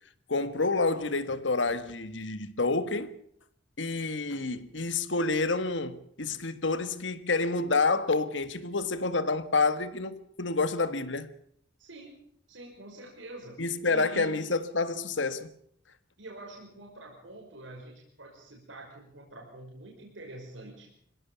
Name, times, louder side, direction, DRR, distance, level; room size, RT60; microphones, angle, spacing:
voice 1, 0.3-3.1 3.8-11.3 13.6-15.5, left 3 dB, 75° left, 1.6 m, -28 dB
voice 2, 11.8-12.2 12.5-14.4 16.2-20.9, right 2 dB, 85° right, 5.6 m, -46 dB
25.5 x 16.5 x 7.0 m
head